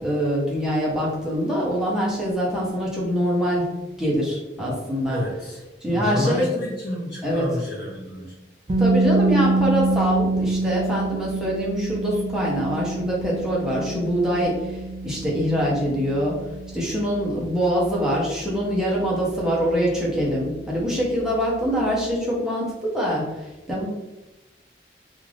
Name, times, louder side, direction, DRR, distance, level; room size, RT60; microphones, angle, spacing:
voice 1, 0.0-3.7 4.0-5.2 5.8-6.5 7.2-7.6 8.8-16.4 16.7-23.9, equal, 5° right, -5 dB, 0.7 m, -24 dB
voice 2, 5.1-5.6 5.9-8.3, equal, 70° left, -8 dB, 0.8 m, -29 dB
sound 1, 8.7-20.5, right 2 dB, 30° right, 0.3 m, -26 dB
2.4 x 2.4 x 3.3 m, 1.1 s
head